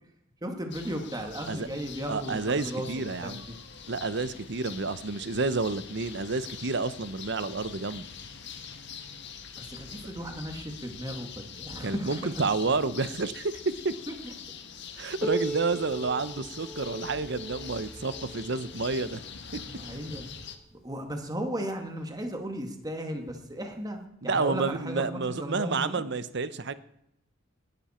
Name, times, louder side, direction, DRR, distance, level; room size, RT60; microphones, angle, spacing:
voice 1, 0.4-3.6 9.6-12.1 12.6-12.9 14.2-14.3 19.8-20.3 20.8-26.0, equal, 20° right, 4 dB, 2.0 m, -36 dB
sound 1, 0.7-20.6, left 6 dB, 60° left, 1.6 m, -44 dB
voice 2, 2.1-3.4 3.9-8.1 11.8-13.5 13.8-13.9 15.0-19.2 19.5-19.6 24.2-26.7, right 3 dB, 60° right, 14 dB, 0.9 m, -30 dB
Piano, 15.2-20.5 21.4-21.5 22.0-22.1 22.9-23.0 24.0-24.1, right 1 dB, 5° left, 1.6 m, -39 dB
20.0 x 12.5 x 4.4 m, 0.80 s
head